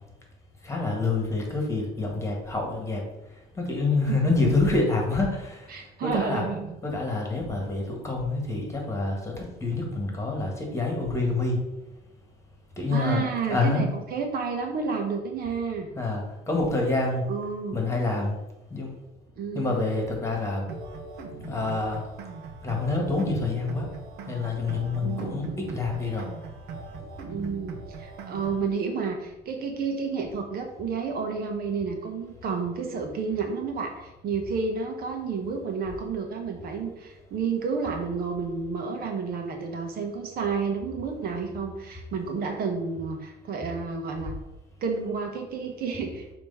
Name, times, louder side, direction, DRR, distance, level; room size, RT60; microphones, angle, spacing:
voice 1, 0.6-3.0 3.6-5.7 6.0-6.4 6.8-11.6 12.8-13.9 16.0-17.2 17.7-18.4 18.7-18.9 19.5-20.7 21.4-22.0 22.6-23.9 24.3-26.3, left 3 dB, 15° left, 0 dB, 1.9 m, -27 dB
voice 2, 4.1-4.4 5.7-6.7 12.9-15.9 17.3-17.8 19.4-19.8 25.0-25.4 27.3-44.4 44.8-46.3, right 5 dB, 65° right, 3 dB, 1.2 m, -31 dB
sound 1, 20.7-28.7, right 4 dB, 85° right, 0.9 m, -40 dB
6.8 x 3.1 x 5.6 m, 0.95 s
cardioid pair, 110°, 17 cm